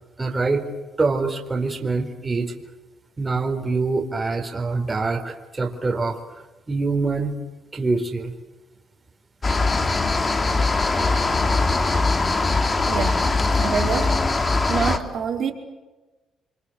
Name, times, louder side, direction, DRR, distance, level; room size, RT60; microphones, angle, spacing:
voice 1, 0.2-0.6 1.0-2.5 3.2-6.2 6.7-7.4 7.7-8.4 12.3-12.4, right 3 dB, 25° right, 2 dB, 4.3 m, -24 dB
sound 1, 9.4-15.0, left 3 dB, 30° left, 3.0 m, -21 dB
voice 2, 12.9-14.2 14.7-15.5, right 6 dB, 60° right, 1 dB, 5.1 m, -26 dB
29.5 x 24.0 x 8.1 m, 1.1 s
cardioid pair, 90°, 0 cm